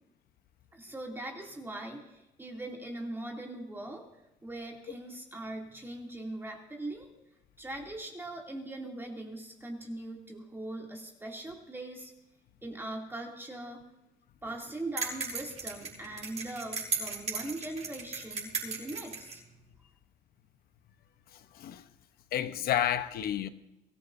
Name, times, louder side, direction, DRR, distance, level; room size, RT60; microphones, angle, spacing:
voice 1, 0.7-4.0 4.4-7.1 7.6-12.1 12.6-13.8 14.4-19.4, right 1 dB, 15° right, 2.7 m, -41 dB
sound 1, 15.0-19.4, right 4 dB, 40° right, 6.8 m, -36 dB
voice 2, 21.3-21.8 22.3-23.5, left 10 dB, 65° left, 0.9 m, -31 dB
23.5 x 14.5 x 2.7 m
cardioid pair, 110°, 17 cm